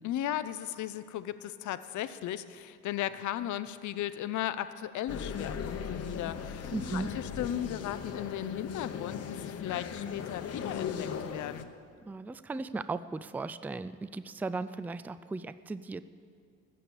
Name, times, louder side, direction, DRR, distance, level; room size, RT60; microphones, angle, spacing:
voice 1, 0.0-11.7, left 12 dB, 75° left, 13 dB, 0.6 m, -36 dB
sound 1, 5.1-11.6, left 6 dB, 55° left, 0.9 m, -38 dB
voice 2, 6.7-7.1 12.1-16.0, right 3 dB, 5° right, 13 dB, 0.3 m, -36 dB
15.0 x 6.9 x 8.4 m, 2.2 s
cardioid pair, 90°, 30 cm